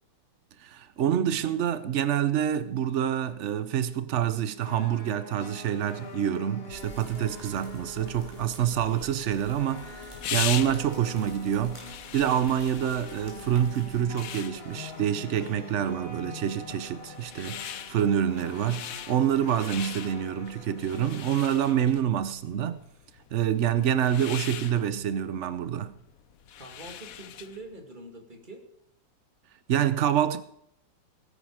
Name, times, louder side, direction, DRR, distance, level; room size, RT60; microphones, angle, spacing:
voice 1, 0.6-11.8 12.1-22.8 23.3-25.9 29.7-30.4, right 9 dB, 80° right, 0.6 m, -27 dB
sound 1, 4.6-21.6, left 3 dB, 30° left, 1.9 m, -45 dB
sound 2, 6.7-14.0, equal, 15° left, 4.9 m, -49 dB
sound 3, 9.2-27.7, left 10 dB, 60° left, 1.0 m, -41 dB
voice 2, 26.6-28.6, right 2 dB, 25° right, 2.4 m, -44 dB
17.0 x 10.0 x 4.9 m
omnidirectional pair, 2.1 m